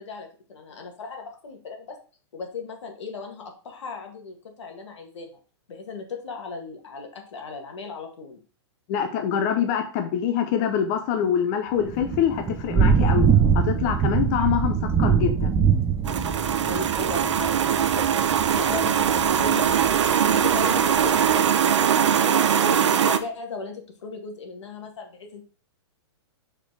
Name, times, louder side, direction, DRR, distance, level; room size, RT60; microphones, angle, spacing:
voice 1, 0.0-2.0 2.3-5.3 5.7-8.4 16.7-18.2 18.6-25.4, left 4 dB, 85° left, 3 dB, 1.9 m, -37 dB
voice 2, 8.9-13.3 13.5-15.6, left 8 dB, 40° left, 6 dB, 0.7 m, -25 dB
Thunder / Rain, 11.8-21.3, right 7 dB, 15° right, 0.6 m, -24 dB
sound 1, 16.0-23.2, right 8 dB, 90° right, 0.7 m, -21 dB
5.1 x 4.4 x 4.6 m, 0.38 s
hypercardioid pair, 145°, 15 cm